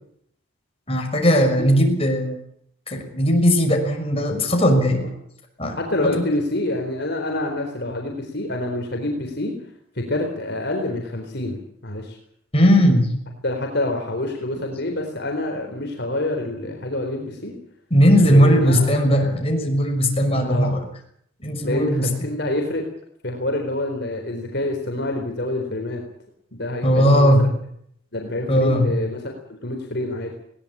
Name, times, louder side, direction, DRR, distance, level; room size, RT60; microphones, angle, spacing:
voice 1, 0.9-2.4 2.9-5.0 5.6-5.8 12.5-13.1 17.9-20.8 21.4-22.1 26.8-27.4 28.5-28.9, equal, 30° left, 3 dB, 6.1 m, -18 dB
voice 2, 5.8-9.5 10.0-12.2 13.4-17.5 18.2-18.9 20.4-20.8 21.6-22.8 23.2-26.0 26.5-27.5 28.1-29.3 29.6-30.3, left 1 dB, 55° left, 2 dB, 4.0 m, -27 dB
21.5 x 19.0 x 8.7 m, 0.70 s
head